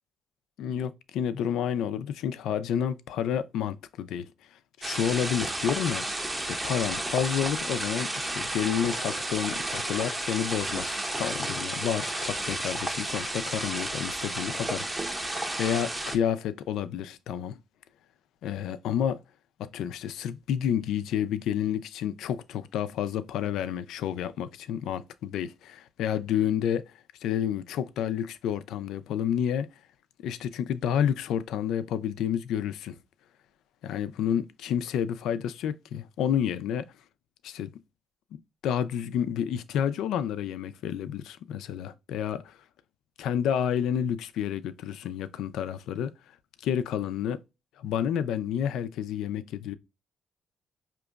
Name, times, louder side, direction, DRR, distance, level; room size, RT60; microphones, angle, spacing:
voice 1, 0.6-4.3 4.8-6.2 6.5-17.6 18.4-19.2 19.7-26.9 27.2-29.7 30.2-33.0 33.8-36.9 37.4-37.7 38.6-42.6 43.2-46.1 46.6-47.4 47.8-49.8, left 9 dB, 85° left, 0.4 m, -30 dB
sound 1, 4.8-16.2, right 1 dB, 15° right, 0.7 m, -32 dB
5.0 x 2.9 x 2.3 m
cardioid pair, 90°, 0 cm